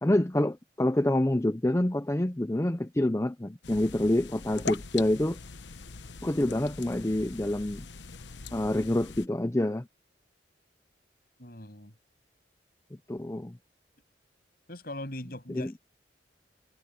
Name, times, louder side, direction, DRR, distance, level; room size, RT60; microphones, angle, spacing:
voice 1, 0.0-5.4 6.2-7.8 8.5-9.9 13.1-13.5 15.5-15.7, left 1 dB, 15° left, 0.6 m, -27 dB
sound 1, 3.6-9.3, left 5 dB, 80° left, 1.0 m, -42 dB
voice 2, 11.4-11.9 14.7-15.8, left 1 dB, 55° left, 7.9 m, -40 dB
head